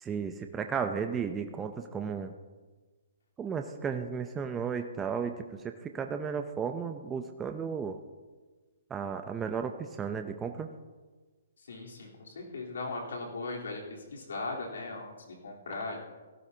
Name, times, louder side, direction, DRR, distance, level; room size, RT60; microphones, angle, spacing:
voice 1, 0.0-2.3 3.4-5.3 5.6-8.0 8.9-10.7, right 6 dB, 15° right, 6 dB, 0.6 m, -34 dB
voice 2, 11.6-16.0, left 3 dB, 80° left, -2 dB, 3.7 m, -38 dB
17.0 x 15.0 x 2.8 m, 1.3 s
hypercardioid pair, 145°, 0 cm